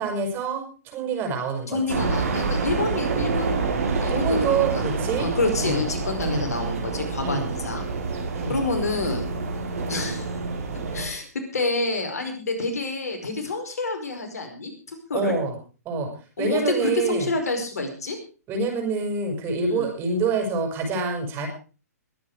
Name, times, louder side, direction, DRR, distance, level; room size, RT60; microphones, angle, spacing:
voice 1, 0.0-1.8 4.1-5.3 5.6-5.8 6.2-6.5 7.2-7.5 8.3-8.6 15.1-15.5 15.8-16.1 16.4-17.3 18.5-21.5, right 4 dB, 25° right, 3 dB, 6.4 m, -26 dB
voice 2, 1.7-3.5 4.0-4.8 5.2-7.8 8.5-9.3 9.9-10.3 10.9-11.3 11.5-15.3 16.4-18.2 19.6-19.9, left 3 dB, 70° left, 5 dB, 5.0 m, -28 dB
sound 1, 1.9-11.1, right 4 dB, 60° right, 5.2 m, -27 dB
22.0 x 9.2 x 4.9 m, 0.36 s
figure-of-eight pair, 125°, 9 cm